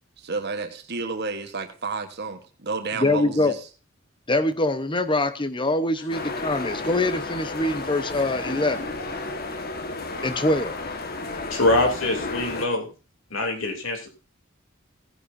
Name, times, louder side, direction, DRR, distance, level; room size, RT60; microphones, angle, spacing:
voice 1, 0.2-3.5, right 4 dB, 55° right, 6 dB, 1.4 m, -31 dB
voice 2, 2.9-3.6 4.3-8.8 10.2-10.8, left 2 dB, 25° left, 11 dB, 1.0 m, -24 dB
sound 1, 6.1-12.7, left 3 dB, 45° left, 1.6 m, -32 dB
voice 3, 11.5-12.8 13.3-14.1, left 2 dB, 75° left, 3 dB, 3.2 m, -23 dB
16.5 x 10.5 x 2.7 m, 0.33 s
head